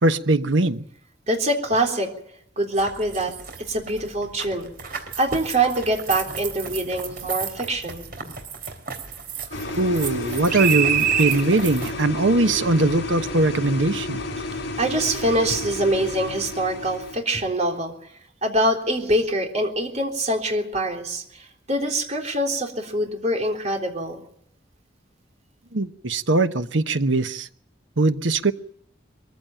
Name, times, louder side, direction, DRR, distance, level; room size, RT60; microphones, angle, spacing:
voice 1, 0.0-0.8 9.8-14.2 25.7-27.5 28.0-28.5, right 2 dB, 90° right, 1.1 m, -21 dB
voice 2, 1.3-2.1 2.6-3.3 3.7-4.7 5.2-8.0 9.5-9.6 14.8-17.9 18.4-24.2, right 1 dB, 40° right, 3.6 m, -24 dB
sound 1, 2.8-11.9, right 8 dB, 55° right, 3.5 m, -29 dB
sound 2, 9.5-17.2, left 2 dB, 75° left, 5.1 m, -31 dB
22.5 x 15.0 x 8.9 m
head